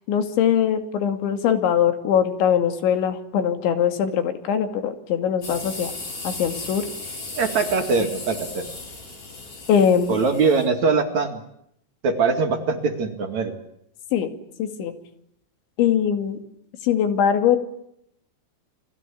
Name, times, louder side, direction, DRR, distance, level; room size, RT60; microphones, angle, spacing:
voice 1, 0.1-5.9 6.2-6.9 9.7-10.2 14.1-14.3 14.6-14.9 15.8-16.4 16.8-17.6, left 8 dB, 85° left, 8 dB, 4.7 m, -21 dB
sound 1, 5.4-10.7, left 3 dB, 45° left, 8.2 m, -36 dB
voice 2, 7.3-8.7 10.1-11.4 12.0-13.5, right 4 dB, 50° right, 6 dB, 2.9 m, -22 dB
30.0 x 21.0 x 8.5 m, 0.76 s
omnidirectional pair, 5.2 m